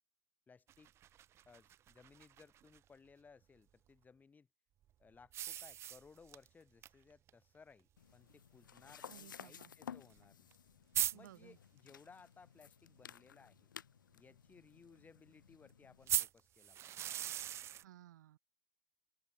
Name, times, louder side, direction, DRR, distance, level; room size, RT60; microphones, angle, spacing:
voice 1, 0.5-0.9 1.5-4.5 5.0-10.5 11.1-13.7 14.1-17.1, left 5 dB, 15° left, 5.2 m, -62 dB
sound 1, 0.7-2.8 5.3-6.5 6.8-6.9 7.3-7.4 8.3-8.4 10.2-10.3 10.5-10.6 10.9-11.1 16.1-17.8, right 11 dB, 25° right, 0.3 m, -39 dB
sound 2, 8.0-16.3, left 8 dB, 75° left, 1.4 m, -55 dB
voice 2, 9.1-9.7 11.1-11.6 17.8-18.4, right 13 dB, 65° right, 2.3 m, -58 dB
open air
hypercardioid pair, 95°, 11 cm